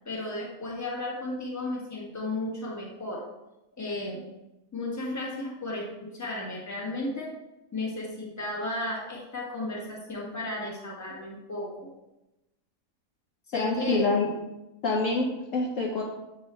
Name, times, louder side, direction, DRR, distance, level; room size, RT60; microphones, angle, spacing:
voice 1, 0.0-3.2 3.8-4.3 4.7-7.3 7.7-11.9 13.5-14.1, left 2 dB, 10° left, -3 dB, 1.1 m, -34 dB
voice 2, 13.5-14.3 14.8-16.0, left 3 dB, 65° left, -1 dB, 1.0 m, -26 dB
7.4 x 3.0 x 4.3 m, 0.96 s
omnidirectional pair, 1.7 m